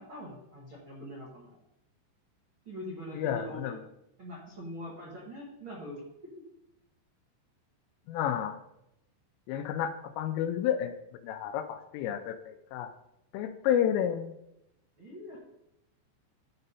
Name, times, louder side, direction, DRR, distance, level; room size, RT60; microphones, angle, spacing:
voice 1, 0.0-1.6 2.6-3.7 4.2-6.0 6.3-6.4 15.0-15.4, equal, 80° right, -4 dB, 1.1 m, -43 dB
voice 2, 3.1-3.8 8.1-8.6 9.5-10.9 11.2-12.9 13.3-14.4, left 9 dB, 85° left, 7 dB, 3.2 m, -31 dB
12.0 x 5.4 x 4.1 m, 0.84 s
omnidirectional pair, 5.7 m